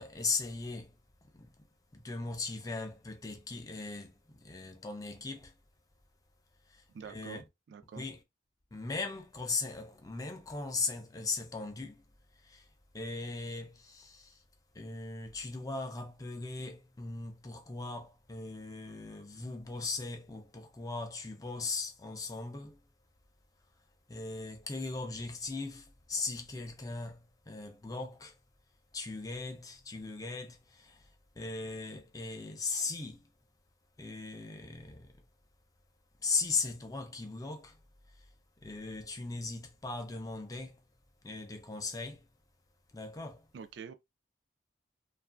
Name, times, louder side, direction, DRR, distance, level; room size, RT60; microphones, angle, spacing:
voice 1, 0.0-1.6 1.9-5.5 6.6-7.5 7.9-8.2 8.7-12.0 12.3-14.4 14.7-22.8 24.1-28.4 28.9-33.3 34.0-35.3 36.2-37.8 38.1-38.3 38.6-40.9 41.2-42.3 42.9-43.5, left 3 dB, 20° left, 0.4 m, -39 dB
voice 2, 6.9-8.1 43.5-43.9, right 6 dB, 65° right, 0.3 m, -46 dB
2.8 x 2.4 x 2.3 m
head